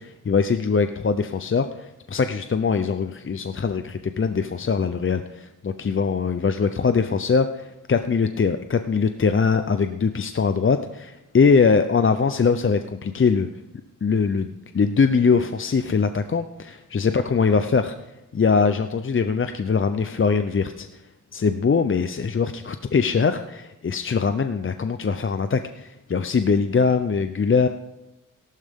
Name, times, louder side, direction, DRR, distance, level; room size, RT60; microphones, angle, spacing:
voice 1, 0.0-13.5 14.0-17.9 18.3-21.0 21.3-27.7, left 5 dB, 40° left, 9 dB, 0.6 m, -22 dB
17.0 x 12.0 x 3.6 m, 0.93 s
wide cardioid pair, 105°, 33 cm